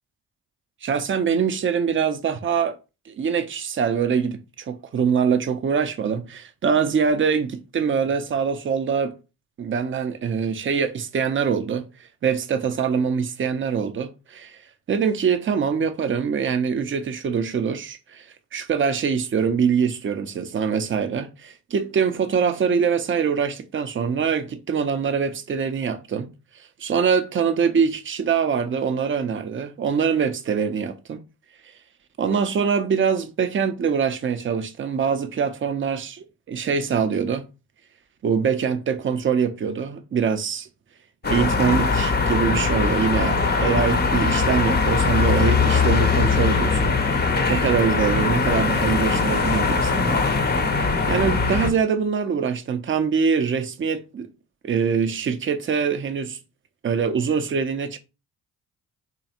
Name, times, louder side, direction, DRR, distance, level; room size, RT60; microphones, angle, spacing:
voice 1, 0.8-2.8 3.1-9.1 9.6-11.9 12.2-14.6 14.9-18.3 18.5-26.3 26.8-31.2 32.2-37.4 38.2-40.7 41.2-47.2 47.5-50.2 51.1-54.3 54.6-56.4 56.8-58.0, right 6 dB, 25° right, 0.5 m, -24 dB
sound 1, 41.2-51.7, left 4 dB, 20° left, 0.6 m, -21 dB
3.1 x 2.4 x 2.8 m
hypercardioid pair, 40°, 47 cm